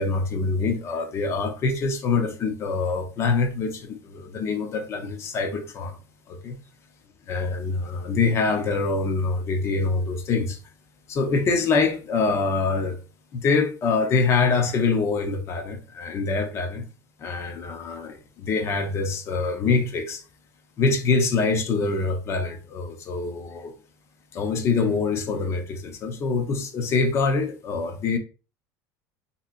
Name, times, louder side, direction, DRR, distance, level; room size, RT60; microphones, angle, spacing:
voice 1, 0.0-6.0 6.3-6.6 7.3-10.6 11.1-13.0 13.3-16.9 17.2-20.2 20.8-23.7 24.3-28.2, left 4 dB, 30° left, 0.5 m, -25 dB
3.4 x 2.8 x 2.4 m
cardioid pair, 150°, 9 cm